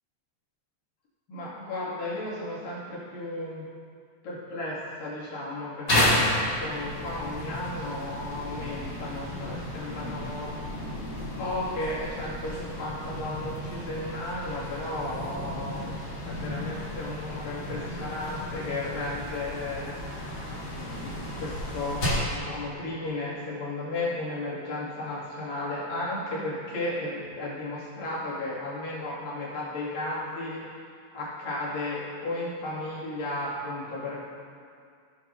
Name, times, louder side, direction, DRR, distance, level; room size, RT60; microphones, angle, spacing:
voice 1, 1.3-3.7 4.2-10.7 11.4-20.3 20.7-30.8 31.1-34.2, left 2 dB, 70° left, -9 dB, 4.1 m, -34 dB
sound 1, 5.9-22.4, left 1 dB, 30° left, 3.0 m, -32 dB
17.5 x 7.0 x 2.7 m, 2.3 s
omnidirectional pair, 4.1 m